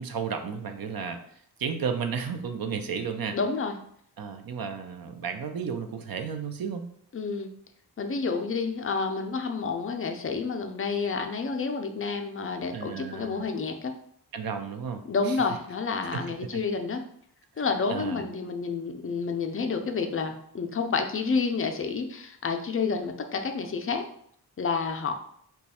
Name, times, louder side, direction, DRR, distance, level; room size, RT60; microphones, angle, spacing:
voice 1, 0.0-3.4 4.2-6.9 12.7-13.4 14.3-15.4 16.1-16.2 16.5-16.6 17.9-18.2, right 6 dB, 60° right, 7 dB, 0.5 m, -33 dB
voice 2, 3.3-3.7 7.1-7.5 8.0-13.9 15.1-17.0 17.6-24.0 24.6-25.1, left 4 dB, 35° left, 5 dB, 0.4 m, -29 dB
3.0 x 2.3 x 4.2 m, 0.65 s
wide cardioid pair, 115°, 41 cm